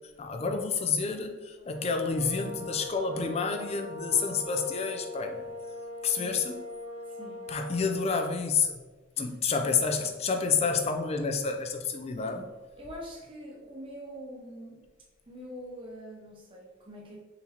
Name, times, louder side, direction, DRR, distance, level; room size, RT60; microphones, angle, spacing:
voice 1, 0.2-5.4 6.0-6.6 7.5-8.8 9.2-12.5, left 5 dB, 30° left, 5 dB, 0.4 m, -29 dB
sound 1, 1.6-8.2, left 1 dB, 85° left, 0.6 m, -41 dB
voice 2, 7.1-7.5 9.2-9.3 12.8-14.9 15.3-17.2, equal, 25° right, -3 dB, 0.7 m, -44 dB
4.3 x 3.9 x 2.8 m, 1.2 s
head